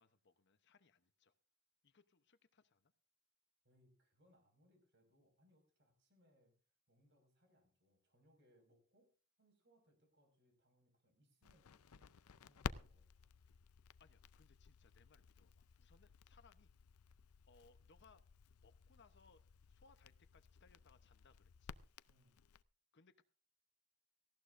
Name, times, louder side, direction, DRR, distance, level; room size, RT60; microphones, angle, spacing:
voice 1, 0.0-1.3 1.8-2.9 14.0-16.7 17.5-18.2 18.5-21.8 22.9-23.2, left 4 dB, 55° left, 11 dB, 0.9 m, -70 dB
voice 2, 3.6-6.6 6.9-9.1 9.4-13.3 22.1-22.5, equal, 55° right, 4 dB, 5.4 m, -74 dB
Crackle, 11.4-22.6, left 6 dB, 80° left, 0.5 m, -54 dB
18.5 x 16.0 x 2.6 m, 0.37 s
head